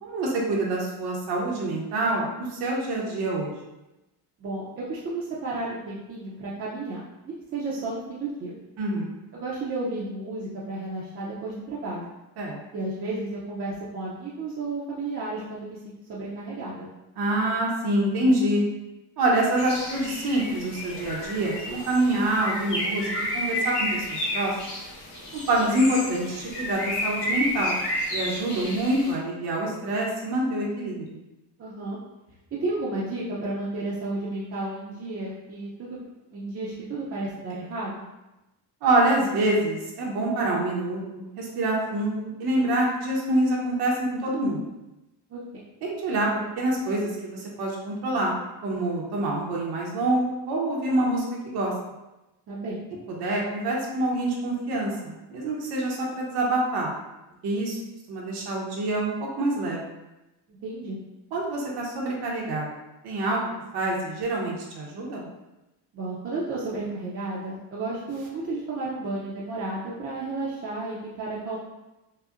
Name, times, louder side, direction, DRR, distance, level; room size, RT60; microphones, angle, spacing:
voice 1, 0.0-3.5 8.8-9.1 12.4-12.6 17.2-18.6 19.2-24.5 25.3-27.7 28.1-31.2 38.8-44.7 45.8-46.3 46.6-48.3 48.6-51.7 53.2-56.9 57.4-57.8 58.1-59.8 61.3-62.7 63.0-65.3, right 1 dB, 70° right, -3 dB, 0.9 m, -26 dB
voice 2, 4.4-8.5 9.3-12.0 12.7-16.9 31.6-32.0 32.6-36.0 36.3-38.0 45.3-45.4 52.5-52.8 60.6-61.0 65.9-71.6, right 2 dB, 35° right, -7 dB, 0.6 m, -32 dB
Bird, 19.6-29.1, left 1 dB, 70° left, 1.4 m, -31 dB
5.5 x 2.1 x 2.5 m, 0.99 s
cardioid pair, 145°, 41 cm